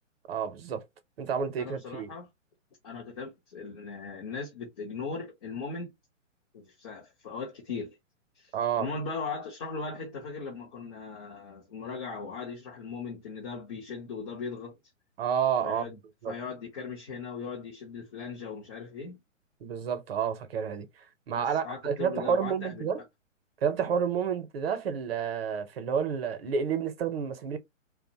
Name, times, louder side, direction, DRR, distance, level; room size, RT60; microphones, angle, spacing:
voice 1, 0.3-0.8 1.2-2.1 8.5-8.9 15.2-15.8 16.2-16.4 19.6-20.9 21.3-23.0 23.6-27.6, right 7 dB, 50° right, 0.6 m, -30 dB
voice 2, 1.6-2.3 2.8-5.9 6.5-8.0 8.4-14.8 15.6-16.0 16.3-19.2 21.4-22.9, left 4 dB, 30° left, 0.6 m, -38 dB
2.4 x 2.0 x 2.7 m
figure-of-eight pair, 135°, 39 cm